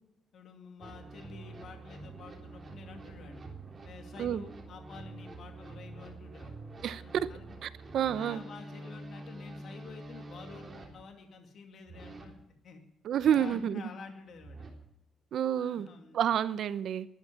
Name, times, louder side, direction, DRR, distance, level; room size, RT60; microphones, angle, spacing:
voice 1, 0.3-3.4 3.8-6.6 6.9-7.5 8.1-12.3 12.6-12.8 13.3-14.7 15.6-16.3, left 5 dB, 60° left, 2.5 m, -49 dB
sound 1, 0.8-10.9 11.9-12.3 13.2-13.6 14.3-14.7, right 2 dB, 30° right, 3.7 m, -47 dB
voice 2, 7.6-8.4 13.0-13.9 15.3-15.9 16.1-17.1, right 9 dB, 65° right, 0.8 m, -29 dB
12.5 x 11.0 x 8.5 m
cardioid pair, 105°, 0 cm